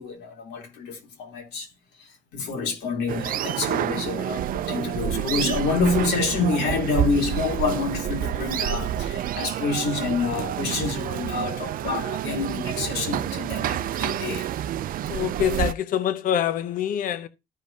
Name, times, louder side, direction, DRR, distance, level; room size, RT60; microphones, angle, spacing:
voice 1, 0.0-1.7 2.0-14.5, left 4 dB, 80° left, 3.6 m, -27 dB
sound 1, 3.1-15.7, right 11 dB, 55° right, 0.5 m, -28 dB
voice 2, 15.1-17.3, left 10 dB, 55° left, 0.8 m, -25 dB
14.0 x 5.2 x 2.8 m
cardioid pair, 110°, 17 cm